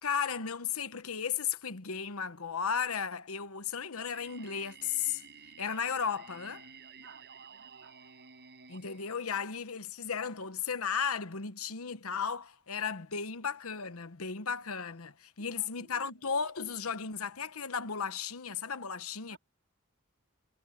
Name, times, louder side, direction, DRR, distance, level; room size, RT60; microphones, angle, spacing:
voice 1, 0.0-5.2 5.6-6.7 8.7-19.4, left 6 dB, 70° left, 1.1 m, -35 dB
Singing, 4.0-9.9, right 6 dB, 50° right, 5.8 m, -53 dB
voice 2, 7.0-8.0 15.4-16.3 19.3-19.4, right 4 dB, 65° right, 4.0 m, -58 dB
head